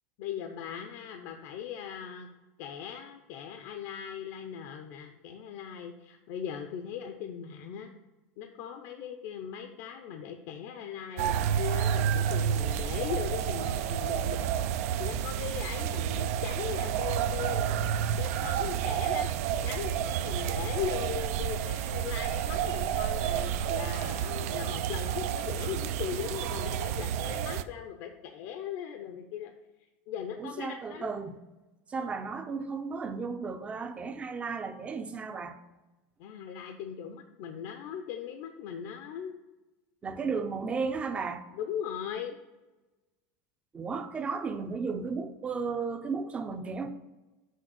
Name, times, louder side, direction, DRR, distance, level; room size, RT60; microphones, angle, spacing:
voice 1, 0.2-2.3 2.6-7.9 8.4-14.6 15.0-17.9 18.2-19.3 19.6-29.5 30.1-31.1 36.2-39.4 41.5-42.4, left 8 dB, 55° left, 0.7 m, -39 dB
sound 1, 11.2-27.6, right 9 dB, 75° right, 0.5 m, -30 dB
voice 2, 30.4-31.4 31.9-35.6 40.0-41.4 43.7-46.9, right 5 dB, 15° right, 0.5 m, -34 dB
6.5 x 4.6 x 6.1 m
supercardioid pair, 165°, 8 cm